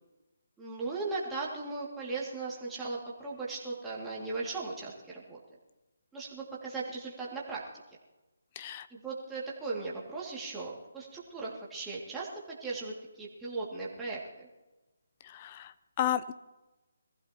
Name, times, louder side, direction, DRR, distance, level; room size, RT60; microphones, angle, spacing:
voice 1, 0.6-5.4 6.1-7.6 8.9-14.5, right 3 dB, 5° right, -6 dB, 2.5 m, -38 dB
voice 2, 8.6-8.9 15.2-16.3, left 11 dB, 25° left, 14 dB, 0.6 m, -33 dB
22.0 x 15.0 x 3.0 m, 1.1 s
hypercardioid pair, 160°, 0 cm